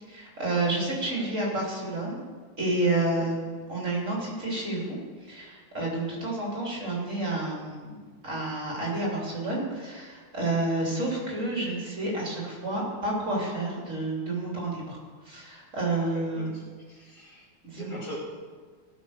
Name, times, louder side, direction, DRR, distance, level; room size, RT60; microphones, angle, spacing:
voice 1, 0.1-2.2 2.6-15.0 15.2-16.5 17.6-18.0, right 2 dB, 35° right, -4 dB, 3.7 m, -30 dB
voice 2, 16.0-16.6 16.9-17.5 17.7-18.2, equal, 50° left, -4 dB, 3.3 m, -43 dB
18.0 x 6.2 x 6.7 m, 1.5 s
omnidirectional pair, 2.3 m